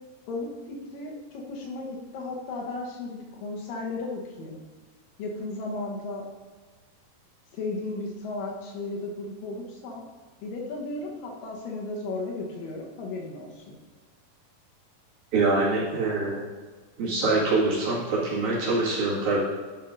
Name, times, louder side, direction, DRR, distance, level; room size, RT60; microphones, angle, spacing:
voice 1, 0.3-4.6 5.2-6.2 7.5-10.0 10.4-13.8, left 2 dB, 70° left, -1 dB, 2.7 m, -35 dB
voice 2, 15.3-16.4 17.0-19.4, right 3 dB, 55° right, -7 dB, 3.2 m, -24 dB
10.5 x 4.5 x 5.1 m, 1.4 s
omnidirectional pair, 4.2 m